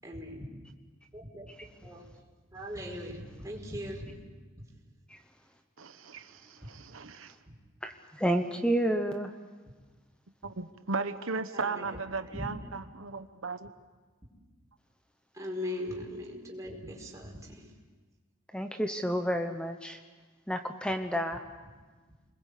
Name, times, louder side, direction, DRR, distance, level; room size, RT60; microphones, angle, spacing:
voice 1, 0.0-0.4 1.1-1.5 1.8-2.1 2.5-4.1 11.5-12.0 12.3-12.4 15.3-17.7, left 1 dB, 15° right, -1 dB, 5.0 m, -39 dB
voice 2, 5.8-7.3 10.4-13.7, right 4 dB, 90° right, 9 dB, 1.1 m, -36 dB
voice 3, 7.8-9.3 18.5-20.0 20.5-21.4, equal, 5° left, 6 dB, 1.0 m, -30 dB
29.0 x 21.5 x 8.5 m, 1.4 s
head